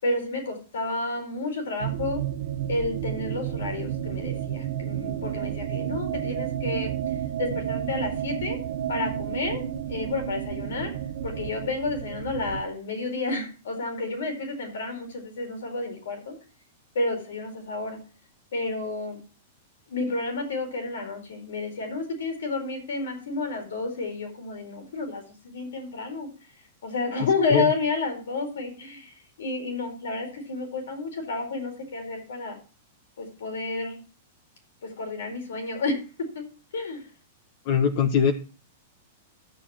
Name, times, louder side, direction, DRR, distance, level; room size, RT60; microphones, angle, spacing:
voice 1, 0.0-2.2 2.7-6.9 7.4-8.6 8.9-9.6 9.9-10.9 11.2-16.3 16.9-18.0 18.5-19.2 19.9-26.3 26.8-32.6 33.2-34.0 34.8-36.4 36.7-37.0, left 3 dB, 85° left, 5 dB, 4.6 m, -30 dB
sound 1, 1.8-12.6, right 11 dB, 65° right, 0.9 m, -31 dB
voice 2, 37.7-38.3, left 7 dB, 50° left, 7 dB, 1.1 m, -21 dB
13.0 x 6.9 x 4.4 m, 0.36 s
hypercardioid pair, 130°, 0 cm